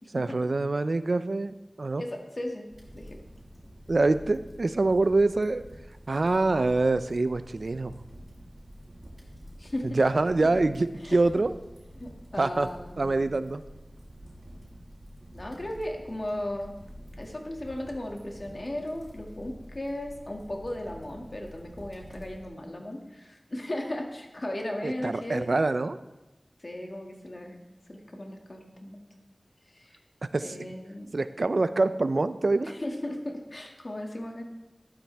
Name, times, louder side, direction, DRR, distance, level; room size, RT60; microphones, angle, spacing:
voice 1, 0.1-2.0 3.9-5.6 6.1-7.9 9.8-11.5 12.4-12.7 13.0-13.6 24.8-26.0 30.3-30.5 31.1-32.7, right 3 dB, 80° right, 12 dB, 0.5 m, -25 dB
voice 2, 2.0-2.7 2.9-3.1 9.6-10.0 11.0-11.2 12.0-13.3 15.3-16.7 17.2-25.6 26.6-27.6 27.9-29.0 29.7-30.0 30.4-31.1 32.6-34.4, left 1 dB, 55° left, 1 dB, 2.3 m, -36 dB
sound 1, 2.7-22.5, equal, 40° right, 5.0 m, -48 dB
14.0 x 12.0 x 3.5 m, 0.99 s
wide cardioid pair, 40°, 0 cm